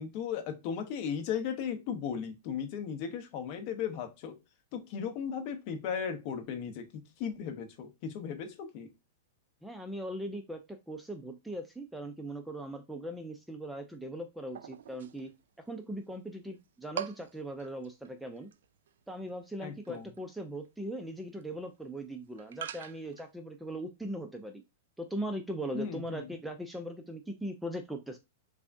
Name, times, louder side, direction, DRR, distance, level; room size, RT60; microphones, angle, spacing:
voice 1, 0.0-4.4 4.7-8.9 19.6-20.1 25.7-26.3, left 7 dB, 40° left, 0.7 m, -36 dB
voice 2, 9.6-15.3 15.7-18.5 19.1-24.6 25.0-28.2, right 1 dB, ahead, 0.3 m, -39 dB
sound 1, 14.5-15.6 15.9-16.0 16.4-16.6 16.9-23.3, right 10 dB, 75° right, 0.4 m, -43 dB
3.5 x 3.4 x 2.5 m
supercardioid pair, 155°, 0 cm